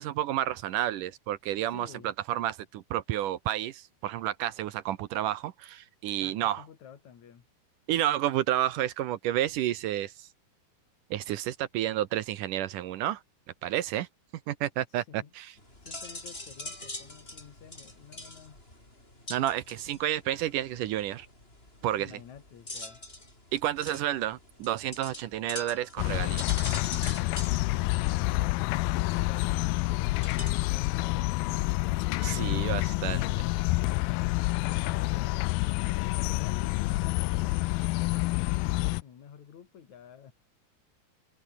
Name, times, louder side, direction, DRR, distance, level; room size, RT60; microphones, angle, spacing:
voice 1, 0.0-6.6 7.9-10.3 11.1-13.2 13.6-14.1 14.5-15.5 19.3-21.3 21.8-22.2 23.5-26.5 32.2-33.5, right 13 dB, 70° right, 2.2 m, -30 dB
voice 2, 1.7-2.1 6.2-7.4 14.9-18.6 22.0-23.0 27.4-31.6 34.1-37.7 37.9-40.3, left 8 dB, 50° left, 3.4 m, -51 dB
sound 1, 15.6-30.7, left 1 dB, 15° left, 5.9 m, -44 dB
sound 2, 26.0-39.0, left 21 dB, 80° left, 2.3 m, -28 dB
open air
omnidirectional pair, 4.5 m